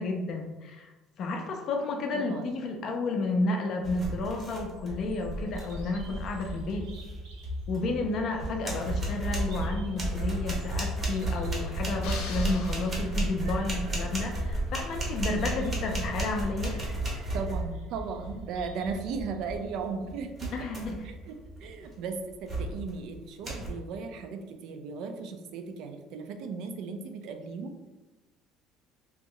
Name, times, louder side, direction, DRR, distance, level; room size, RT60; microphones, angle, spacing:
voice 1, 0.0-6.9 7.7-16.8 20.5-21.1, left 3 dB, 40° left, 3 dB, 0.4 m, -31 dB
voice 2, 2.1-2.5 17.3-20.5 21.0-21.4 21.6-27.7, right 5 dB, 60° right, 6 dB, 0.3 m, -36 dB
sound 1, 3.8-5.0 5.3-5.8 7.7-7.8 8.3-17.9 20.4-21.1 21.6-21.8 22.5-22.9 23.4-23.7, right 1 dB, 20° right, 0.7 m, -33 dB
Bird vocalization bird call bird song, 4.6-22.7, right 1 dB, 75° right, 0.7 m, -39 dB
sound 2, 12.0-13.6, left 5 dB, 85° left, 0.6 m, -43 dB
2.9 x 2.1 x 3.7 m, 1.1 s
cardioid pair, 170°, 0 cm